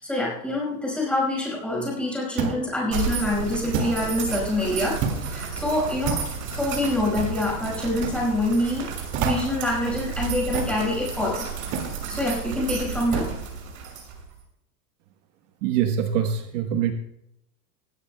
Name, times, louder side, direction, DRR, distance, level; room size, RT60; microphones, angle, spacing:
voice 1, 0.0-11.5 12.1-13.3, left 1 dB, 5° left, -3 dB, 5.0 m, -26 dB
sound 1, 2.4-2.7 3.7-4.0 5.0-5.3 6.1-6.3 7.2-7.4 8.0-8.2 9.1-9.6 10.5-10.8 11.7-12.0 13.1-13.4, right 6 dB, 40° right, 2.2 m, -28 dB
sound 2, 2.9-14.4, right 6 dB, 85° right, 6.2 m, -32 dB
voice 2, 15.6-16.9, right 8 dB, 60° right, 6 dB, 1.2 m, -24 dB
20.0 x 16.5 x 2.2 m, 0.83 s
supercardioid pair, 160°, 43 cm